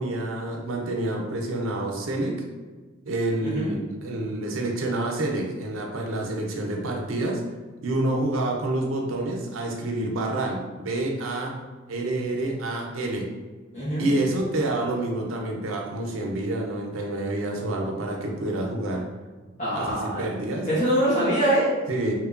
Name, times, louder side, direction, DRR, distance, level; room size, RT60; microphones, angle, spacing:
voice 1, 0.0-2.3 3.1-7.4 7.8-11.5 11.9-13.2 14.0-19.0 19.7-20.7 21.9-22.1, right 2 dB, 80° right, 0 dB, 0.5 m, -28 dB
voice 2, 3.4-3.7 13.7-14.1 19.6-20.2 20.7-21.7, right 1 dB, 35° left, -10 dB, 0.7 m, -23 dB
2.9 x 2.1 x 2.3 m, 1.3 s
head